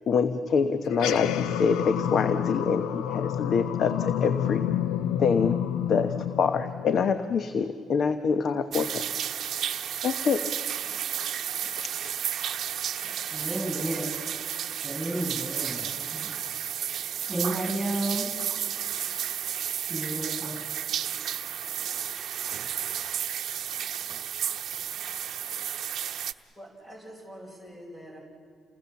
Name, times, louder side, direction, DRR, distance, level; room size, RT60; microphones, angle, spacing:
voice 1, 0.1-4.7 5.2-5.6 5.9-9.1 10.0-10.4 11.8-12.2, left 5 dB, 60° left, 10 dB, 1.0 m, -26 dB
sound 1, 0.9-7.6, left 10 dB, 85° left, 0.7 m, -29 dB
sound 2, 8.7-26.3, right 9 dB, 65° right, 0.8 m, -32 dB
voice 2, 13.0-14.1 14.8-16.3 16.8-18.4 19.9-20.7, right 1 dB, 10° right, 4 dB, 7.3 m, -32 dB
voice 3, 26.6-28.2, equal, 20° left, 0 dB, 5.4 m, -45 dB
29.0 x 20.0 x 7.1 m, 2.3 s
cardioid pair, 90°, 0 cm